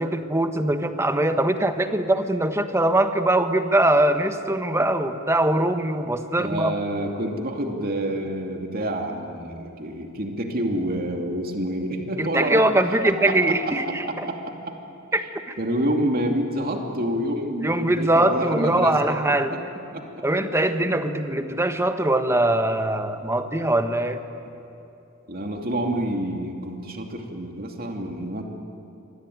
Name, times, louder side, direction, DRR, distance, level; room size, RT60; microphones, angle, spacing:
voice 1, 0.0-6.7 12.2-14.3 15.1-15.2 17.6-19.6 20.2-24.2, right 1 dB, 15° right, 8 dB, 1.3 m, -22 dB
voice 2, 6.4-12.6 13.0-13.6 13.9-14.7 15.6-19.1 19.5-19.6 19.9-20.2 25.3-28.4, right 1 dB, 45° right, 3 dB, 2.8 m, -28 dB
26.5 x 22.5 x 9.5 m, 2.8 s
head